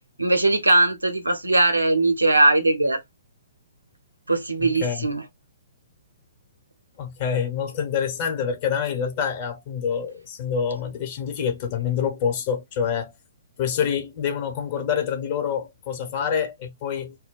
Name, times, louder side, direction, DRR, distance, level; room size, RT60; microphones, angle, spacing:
voice 1, 0.2-3.0 4.3-5.2, right 2 dB, 85° right, 0.7 m, -20 dB
voice 2, 4.6-5.1 7.0-13.1 13.6-17.2, left 7 dB, 40° left, 0.9 m, -26 dB
2.2 x 2.2 x 3.7 m
figure-of-eight pair, 120°, 0 cm